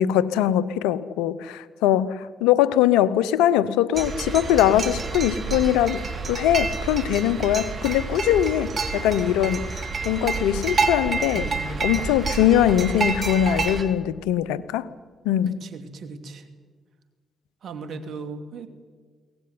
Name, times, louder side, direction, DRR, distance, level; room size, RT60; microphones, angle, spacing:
voice 1, 0.0-11.5 11.8-14.9 15.2-15.6, left 11 dB, 90° left, 18 dB, 0.8 m, -22 dB
sound 1, 3.9-13.8, right 4 dB, 50° right, 3.3 m, -28 dB
voice 2, 11.3-11.9 15.6-16.4 17.6-18.7, right 4 dB, 65° right, 8 dB, 2.6 m, -37 dB
23.0 x 18.0 x 9.6 m, 1.5 s
supercardioid pair, 50°, 0 cm